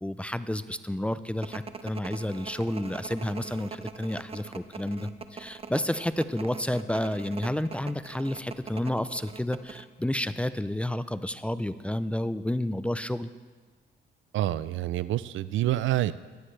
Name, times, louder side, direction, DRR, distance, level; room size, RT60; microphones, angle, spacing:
voice 1, 0.0-13.3, left 1 dB, 5° left, 13 dB, 0.4 m, -30 dB
sound 1, 1.4-9.8, right 5 dB, 30° right, 0.7 m, -42 dB
voice 2, 14.3-16.1, right 14 dB, 75° right, 16 dB, 0.5 m, -27 dB
17.5 x 12.0 x 3.3 m, 1.4 s
cardioid pair, 90°, 20 cm